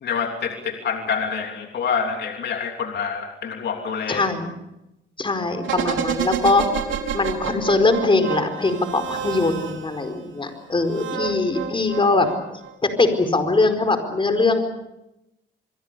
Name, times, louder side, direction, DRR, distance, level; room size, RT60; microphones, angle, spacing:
voice 1, 0.0-4.2, left 6 dB, 60° left, 3 dB, 3.2 m, -27 dB
voice 2, 4.1-4.5 5.2-6.6 7.1-12.3 13.0-14.6, left 3 dB, 25° left, 8 dB, 4.9 m, -21 dB
sound 1, 5.6-10.1 10.9-12.7 13.0-13.1, right 7 dB, 75° right, 3.4 m, -29 dB
27.5 x 22.5 x 6.9 m, 0.89 s
cardioid pair, 90°, 20 cm